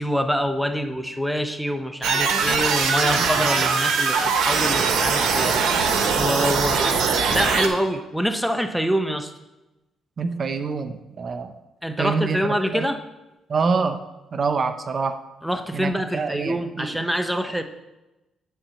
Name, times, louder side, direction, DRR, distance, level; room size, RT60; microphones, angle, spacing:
voice 1, 0.0-9.3 11.8-13.0 15.4-17.6, equal, ahead, 7 dB, 0.8 m, -25 dB
sound 1, 2.0-7.7, right 5 dB, 85° right, 1.2 m, -21 dB
voice 2, 10.2-11.5 12.0-12.4 12.7-12.9 13.5-14.0 14.3-15.2 15.7-17.0, right 5 dB, 45° right, 9 dB, 0.6 m, -26 dB
9.8 x 4.2 x 7.0 m, 1.0 s
cardioid pair, 90°, 0 cm